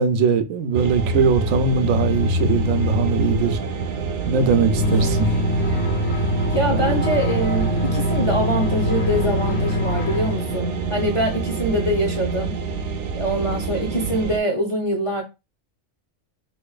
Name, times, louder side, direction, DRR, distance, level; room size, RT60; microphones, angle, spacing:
voice 1, 0.0-3.6 4.3-5.3, right 5 dB, 85° right, 1.0 m, -20 dB
sound 1, 0.7-14.4, right 4 dB, 70° right, 0.9 m, -25 dB
sound 2, 4.8-10.9, left 5 dB, 75° left, 1.1 m, -25 dB
voice 2, 6.5-12.6 13.1-15.2, equal, 45° left, 0.4 m, -24 dB
4.2 x 2.9 x 2.4 m
omnidirectional pair, 1.4 m